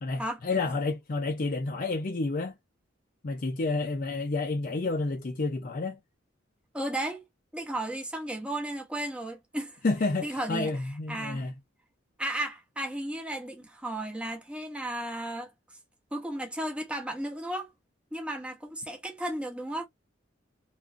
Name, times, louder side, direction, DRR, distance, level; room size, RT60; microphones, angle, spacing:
voice 1, 0.0-2.6 3.2-6.0 9.8-11.5, left 3 dB, 45° left, 0.5 m, -30 dB
voice 2, 6.7-7.2 7.5-9.8 10.2-11.5 12.2-15.5 16.1-17.7 18.1-19.9, right 1 dB, 5° right, 0.8 m, -34 dB
3.0 x 2.4 x 2.4 m
head